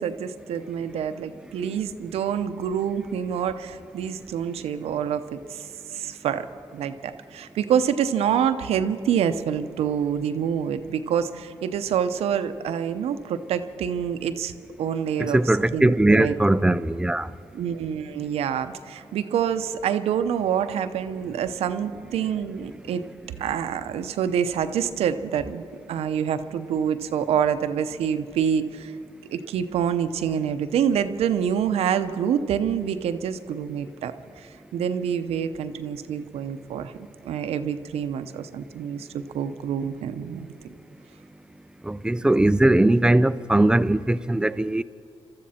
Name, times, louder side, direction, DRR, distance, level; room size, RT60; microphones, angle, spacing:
voice 1, 0.0-6.5 6.7-15.4 15.7-16.4 17.5-23.0 23.4-25.6 25.9-28.9 29.3-36.9 37.2-40.5, right 8 dB, 90° right, 0.7 m, -26 dB
voice 2, 15.2-17.3 41.8-44.8, right 1 dB, 10° right, 0.4 m, -20 dB
24.0 x 13.5 x 4.3 m
cardioid pair, 85°, 10 cm